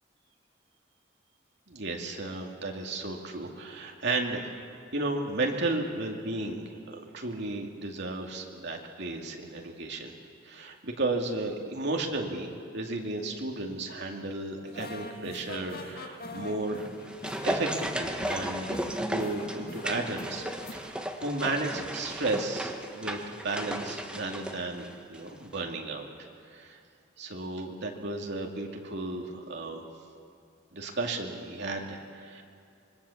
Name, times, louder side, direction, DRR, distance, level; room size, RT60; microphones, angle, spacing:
voice 1, 1.7-4.5 4.9-10.2 10.4-16.9 17.4-20.4 20.7-26.1 26.5-26.8 27.2-29.8 30.7-32.4, right 2 dB, 65° right, 1 dB, 2.4 m, -34 dB
sound 1, 14.6-20.7, left 2 dB, 55° left, 1.9 m, -44 dB
sound 2, 16.7-25.3 25.5-25.6, right 1 dB, 5° right, 1.4 m, -35 dB
26.0 x 22.5 x 7.2 m, 2.4 s
head